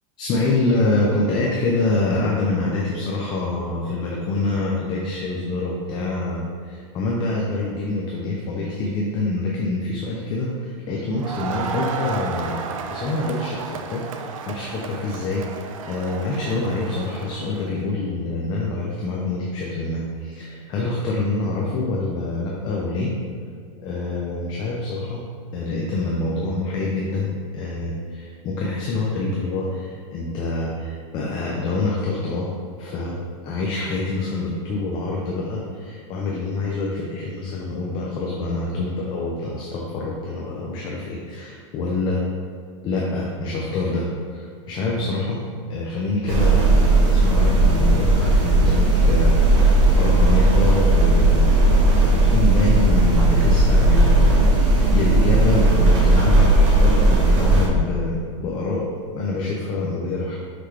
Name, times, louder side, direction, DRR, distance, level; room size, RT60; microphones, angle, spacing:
voice 1, 0.2-12.6 12.9-23.1 23.8-25.2 25.5-32.5 32.8-33.2 33.4-42.2 42.8-45.4 45.7-58.9 59.1-60.4, left 2 dB, 25° left, -3 dB, 0.6 m, -26 dB
Crowd, 11.2-17.7, right 6 dB, 85° right, 0.6 m, -33 dB
sound 1, 46.3-57.7, right 2 dB, 60° right, 1.4 m, -16 dB
5.9 x 4.9 x 3.2 m, 2.2 s
supercardioid pair, 165°, 17 cm